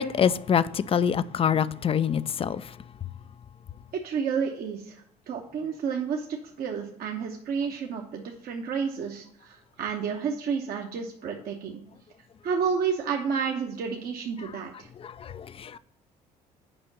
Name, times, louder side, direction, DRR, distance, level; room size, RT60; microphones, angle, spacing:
voice 1, 0.0-2.6 15.0-15.8, left 8 dB, 30° left, 0.4 m, -25 dB
voice 2, 3.9-11.8 12.4-14.9, right 6 dB, 50° right, 0.9 m, -31 dB
7.0 x 5.2 x 5.3 m
figure-of-eight pair, 50°, 20 cm